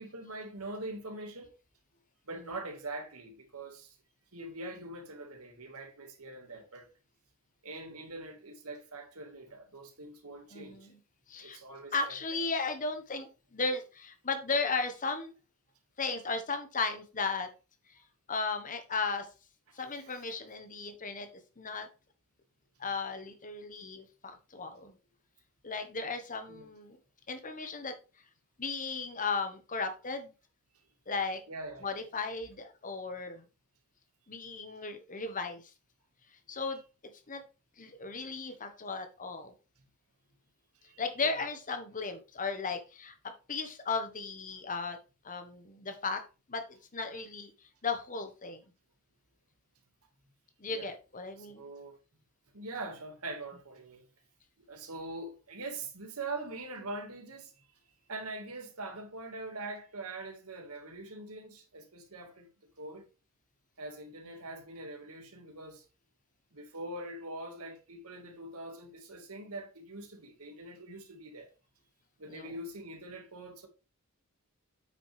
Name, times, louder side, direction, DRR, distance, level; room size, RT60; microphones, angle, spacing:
voice 1, 0.0-1.5 2.3-4.0 4.3-6.9 7.6-10.9 11.4-12.4 19.7-19.8 26.5-26.7 31.5-31.9 40.8-41.3 50.7-50.9 51.4-52.0 52.5-54.1 54.6-57.5 58.1-62.5 62.8-63.0 63.8-65.8 66.5-71.5 72.2-73.7, right 2 dB, 85° right, 1.9 m, -43 dB
voice 2, 10.5-11.0 11.3-11.6 11.9-15.3 16.0-17.5 17.9-18.0 18.3-19.3 19.7-21.3 21.6-21.9 22.8-25.0 25.6-27.0 27.3-27.9 28.6-30.3 31.1-31.4 31.8-33.4 34.3-35.7 36.5-36.8 37.3-37.4 37.8-39.5 41.0-43.1 43.5-45.0 45.2-46.2 46.5-47.5 47.8-48.6 50.6-51.7 72.3-72.5, left 4 dB, 40° left, 1.3 m, -35 dB
8.8 x 6.0 x 3.4 m
head